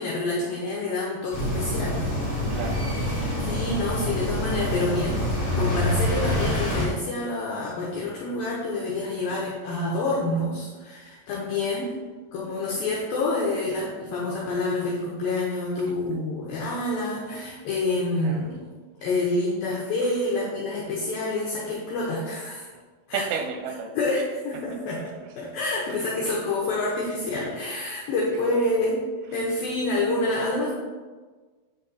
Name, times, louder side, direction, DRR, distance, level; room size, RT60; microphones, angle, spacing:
voice 1, 0.0-2.1 3.4-5.2 5.6-12.0 12.3-18.6 19.0-22.7 23.1-23.2 23.9-29.0 29.3-30.7, left 2 dB, 80° left, -5 dB, 2.1 m, -27 dB
sound 1, 1.3-6.8, left 1 dB, 45° left, 0.8 m, -26 dB
voice 2, 2.5-2.9 9.3-9.4 11.7-11.8 18.2-18.4 22.7-22.8 23.1-24.2 24.5-24.6 28.5-28.6, right 6 dB, 90° right, 4 dB, 3.3 m, -32 dB
8.2 x 4.1 x 4.0 m, 1.4 s
omnidirectional pair, 5.4 m